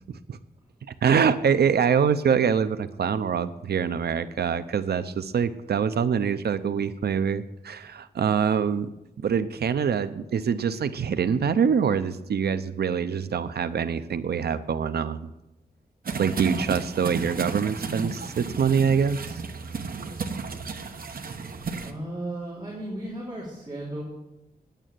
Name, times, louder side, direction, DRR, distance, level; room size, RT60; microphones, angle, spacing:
voice 1, 1.0-8.9 9.2-15.3 16.2-19.2, right 7 dB, 80° right, 13 dB, 0.6 m, -24 dB
sound 1, 16.0-21.9, right 4 dB, 65° right, 1.1 m, -33 dB
voice 2, 21.8-24.0, right 1 dB, 25° right, -6 dB, 3.8 m, -35 dB
9.9 x 9.1 x 9.0 m, 0.92 s
wide cardioid pair, 135°, 16 cm